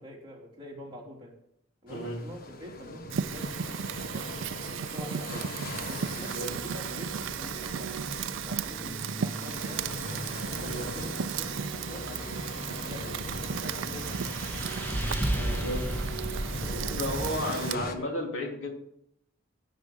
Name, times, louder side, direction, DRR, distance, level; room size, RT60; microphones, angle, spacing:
voice 1, 0.0-1.3 1.8-3.6 4.1-5.5 5.8-9.9 10.5-12.5 12.9-14.4 15.3-15.7 16.5-18.4, equal, 25° right, -4 dB, 3.5 m, -45 dB
voice 2, 1.9-2.2 6.1-6.5 10.6-10.9 15.4-15.8 17.0-18.7, left 1 dB, 80° left, 0 dB, 3.0 m, -33 dB
sound 1, 1.9-18.0, left 1 dB, 50° left, 1.2 m, -41 dB
Fire, 3.1-17.8, right 8 dB, 70° right, 0.4 m, -36 dB
sound 2, 4.9-17.4, right 1 dB, 10° left, 1.6 m, -37 dB
16.5 x 6.1 x 5.3 m, 0.73 s
head